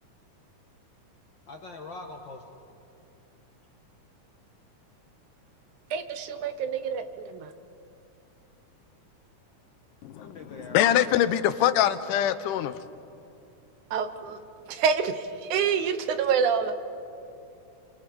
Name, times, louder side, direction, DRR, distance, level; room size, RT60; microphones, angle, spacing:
voice 1, 1.5-2.4 10.2-11.2 11.5-11.9, left 3 dB, 55° left, 1.4 m, -43 dB
voice 2, 5.9-7.5 13.9-14.4 14.7-16.8, right 6 dB, 75° right, 2.3 m, -27 dB
voice 3, 10.7-12.7, left 11 dB, 80° left, 2.2 m, -23 dB
29.0 x 25.0 x 4.7 m
omnidirectional pair, 3.7 m